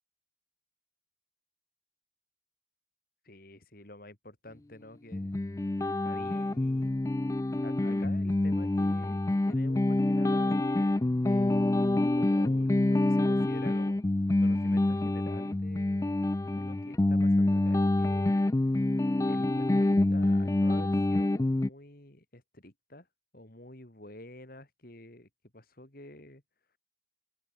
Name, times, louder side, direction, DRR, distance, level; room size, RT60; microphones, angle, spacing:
voice 1, 3.2-5.3 6.0-6.9 7.6-11.8 12.1-14.0 14.4-16.1 16.5-18.5 19.2-23.1 23.3-26.4, left 1 dB, 50° left, 3.3 m, -49 dB
sound 1, 5.1-21.7, left 2 dB, 15° left, 0.3 m, -27 dB
open air
head